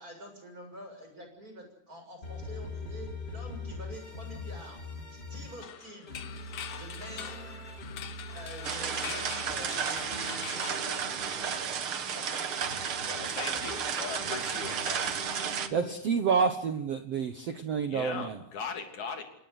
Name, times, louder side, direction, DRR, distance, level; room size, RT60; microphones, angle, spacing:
voice 1, 0.0-4.8 5.1-6.2 6.7-7.6 8.3-12.7, equal, 20° right, 4 dB, 7.3 m, -47 dB
sound 1, 2.2-5.6 6.1-11.6 12.1-15.9, left 2 dB, 15° left, 2.8 m, -43 dB
sound 2, 5.6-11.6, left 9 dB, 85° left, 1.3 m, -43 dB
sound 3, 8.6-15.7, right 7 dB, 60° right, 1.4 m, -33 dB
voice 2, 13.1-15.1 17.9-19.2, left 5 dB, 45° left, 5 dB, 4.1 m, -39 dB
voice 3, 15.7-18.4, right 6 dB, 80° right, 8 dB, 1.4 m, -28 dB
27.5 x 18.5 x 8.0 m, 0.73 s
omnidirectional pair, 4.8 m